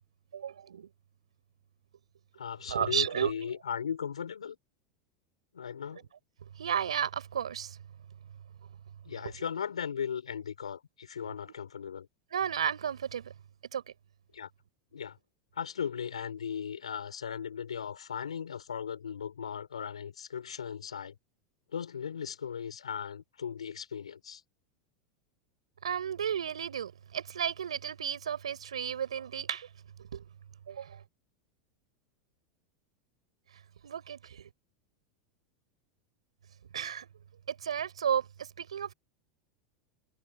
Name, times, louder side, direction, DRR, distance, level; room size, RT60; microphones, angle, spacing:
voice 1, 0.3-0.9 2.6-3.5 6.0-6.1 6.5-7.8 9.3-9.4 12.3-13.3 13.7-13.8 25.8-29.7 30.1-30.2 30.7-31.0 33.8-34.5 36.7-37.1 37.5-38.9, right 8 dB, 85° right, 4.9 m, -33 dB
voice 2, 2.4-4.6 5.5-6.1 9.0-12.1 14.3-14.5 14.9-15.2 15.5-21.2 21.7-24.4, left 7 dB, 85° left, 4.9 m, -37 dB
hypercardioid pair, 95°, 3 cm